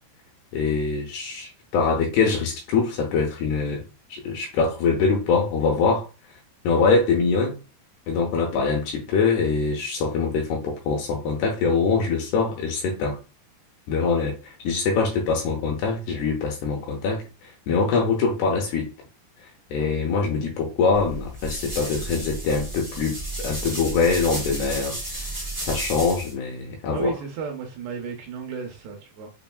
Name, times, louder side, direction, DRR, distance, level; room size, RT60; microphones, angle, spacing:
voice 1, 0.5-3.8 4.1-6.1 6.6-7.6 8.1-13.2 13.9-18.9 19.7-27.1, left 4 dB, 80° left, 2.5 m, -24 dB
sound 1, 20.9-26.3, right 2 dB, 45° right, 0.4 m, -33 dB
voice 2, 26.9-29.3, right 5 dB, 75° right, 2.5 m, -33 dB
6.9 x 2.5 x 2.2 m
omnidirectional pair, 5.2 m